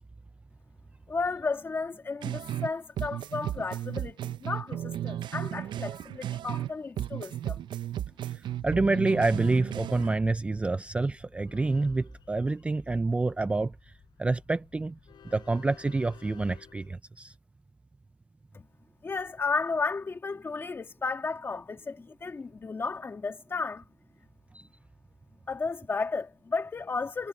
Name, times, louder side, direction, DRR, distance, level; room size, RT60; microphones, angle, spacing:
voice 1, 1.1-7.6 19.0-23.8 25.5-27.3, left 4 dB, 30° left, 1.8 m, -33 dB
sound 1, 2.2-2.7 3.0-6.7 7.0-10.2, right 11 dB, 80° right, 0.6 m, -34 dB
Train, 8.3-17.0, left 9 dB, 75° left, 5.0 m, -57 dB
voice 2, 8.6-13.7 14.2-15.0 15.3-17.3 24.5-24.6, right 3 dB, 15° right, 0.4 m, -27 dB
wide cardioid pair, 150°, 8 cm